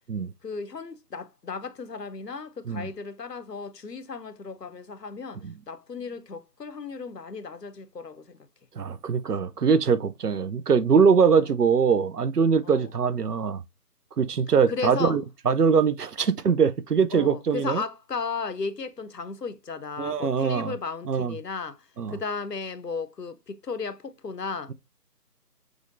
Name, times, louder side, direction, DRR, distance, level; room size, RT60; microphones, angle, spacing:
voice 1, 0.4-8.5 11.3-11.5 12.6-12.9 14.7-15.2 16.2-16.3 17.1-24.7, left 4 dB, 85° left, 0.8 m, -35 dB
voice 2, 8.8-13.6 14.2-17.8 20.0-20.7 21.1-21.4 22.0-22.2, right 6 dB, 70° right, 0.6 m, -22 dB
6.3 x 3.2 x 2.5 m
figure-of-eight pair, 160°, 48 cm